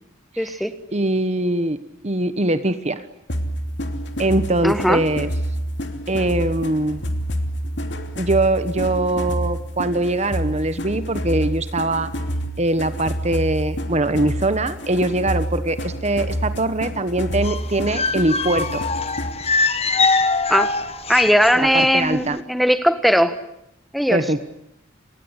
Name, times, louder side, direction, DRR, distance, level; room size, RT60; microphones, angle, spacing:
voice 1, 0.4-0.7 4.6-5.0 20.5-20.7 21.1-23.3 23.9-24.2, equal, ahead, 10 dB, 1.6 m, -18 dB
voice 2, 0.9-1.8 2.0-3.0 4.2-5.3 6.1-7.0 8.2-12.1 12.6-18.8 21.5-22.4 24.1-24.4, right 2 dB, 35° right, 12 dB, 1.2 m, -22 dB
sound 1, 3.3-19.5, equal, 60° left, 2.9 m, -28 dB
sound 2, 17.4-21.9 22.1-22.3, left 4 dB, 30° left, 1.4 m, -23 dB
30.0 x 20.0 x 9.8 m, 0.79 s
head